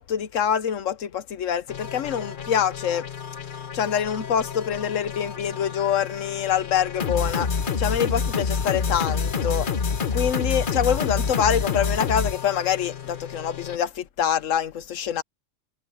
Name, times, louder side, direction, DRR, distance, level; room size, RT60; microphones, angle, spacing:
voice 1, 0.0-3.1 3.7-9.7 10.1-15.2, left 8 dB, 85° left, 1.3 m, -25 dB
sound 1, 1.7-13.8, left 5 dB, 45° left, 1.0 m, -28 dB
omnidirectional pair, 1.3 m